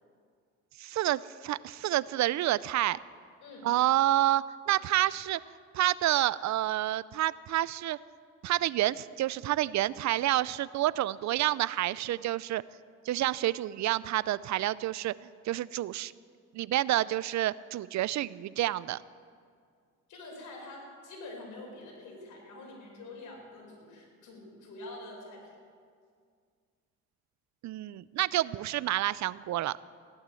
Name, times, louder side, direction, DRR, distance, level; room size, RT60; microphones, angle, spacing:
voice 1, 0.8-3.0 3.6-5.4 5.7-8.0 8.4-12.6 13.1-16.1 16.5-19.0 27.6-29.8, right 14 dB, 65° right, 19 dB, 0.5 m, -29 dB
voice 2, 20.1-25.5, left 2 dB, 80° left, -1 dB, 5.3 m, -46 dB
15.5 x 11.5 x 7.6 m, 2.1 s
cardioid pair, 90°, 30 cm